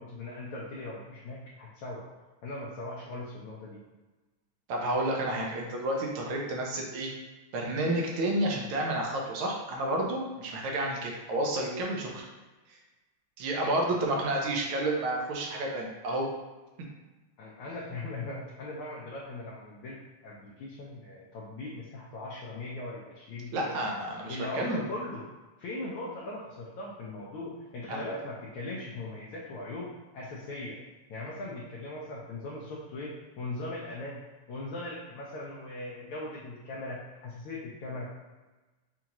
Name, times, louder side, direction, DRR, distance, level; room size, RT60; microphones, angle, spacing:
voice 1, 0.0-2.1 2.4-3.8 17.4-20.0 20.2-23.7 24.3-25.2 25.6-30.8 31.1-34.2 34.5-38.1, left 2 dB, 80° left, -6 dB, 1.6 m, -39 dB
voice 2, 4.7-7.1 7.5-12.3 13.4-16.3 23.5-24.8 27.9-28.0, right 1 dB, 75° right, -1 dB, 1.6 m, -30 dB
5.5 x 2.5 x 2.9 m, 1.2 s
omnidirectional pair, 2.3 m